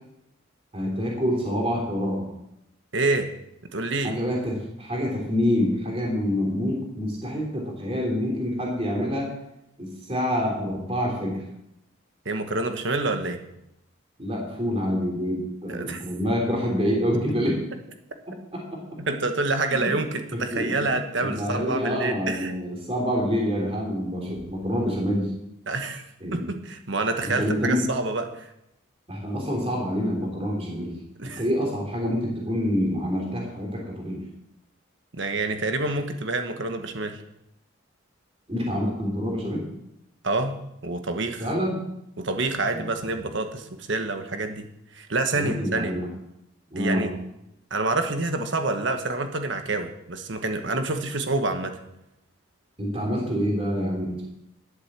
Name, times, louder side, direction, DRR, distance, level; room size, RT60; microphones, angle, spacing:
voice 1, 0.7-2.3 4.0-9.3 9.8-11.4 14.2-17.6 18.3-18.8 19.7-19.9 20.3-20.8 21.2-25.3 26.2-26.4 27.2-27.8 29.1-31.0 31.2-34.2 38.5-39.6 41.4-41.8 42.7-43.1 45.3-46.1 46.7-47.1 52.8-54.2, equal, 30° right, -1 dB, 3.3 m, -27 dB
voice 2, 2.9-3.3 3.7-4.1 12.2-13.4 15.7-16.0 19.0-22.5 25.7-26.0 26.3-28.5 31.2-31.4 35.1-37.2 40.2-40.6 40.8-41.5 42.2-44.7 44.9-45.9 46.8-47.1 47.7-51.8, right 2 dB, 60° right, 6 dB, 1.3 m, -27 dB
11.5 x 8.1 x 7.4 m, 0.82 s
head